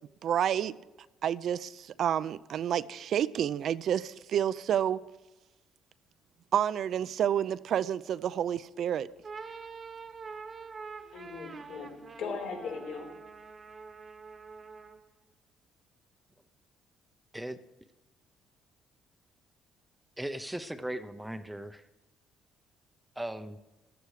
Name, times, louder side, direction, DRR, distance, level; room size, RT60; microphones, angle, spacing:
voice 1, 0.2-0.7 1.2-5.0 6.5-9.1, right 9 dB, 55° right, 0.5 m, -29 dB
sound 1, 9.1-15.1, right 5 dB, 30° right, 1.1 m, -46 dB
voice 2, 11.1-13.1, left 5 dB, 80° left, 4.3 m, -39 dB
voice 3, 20.2-21.9 23.2-23.6, right 1 dB, 5° right, 0.6 m, -38 dB
15.0 x 13.0 x 4.8 m
cardioid pair, 135°, 0 cm